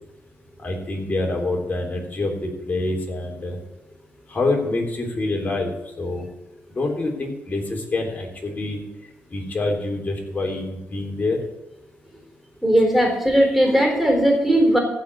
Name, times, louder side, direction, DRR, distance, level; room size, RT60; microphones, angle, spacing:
voice 1, 0.6-3.6 4.3-6.3 6.7-8.8 9.3-11.4, left 2 dB, 35° left, 0 dB, 3.6 m, -26 dB
voice 2, 12.6-14.8, right 1 dB, 5° right, 2 dB, 4.1 m, -18 dB
15.0 x 5.2 x 8.6 m, 0.95 s
cardioid pair, 85°, 5 cm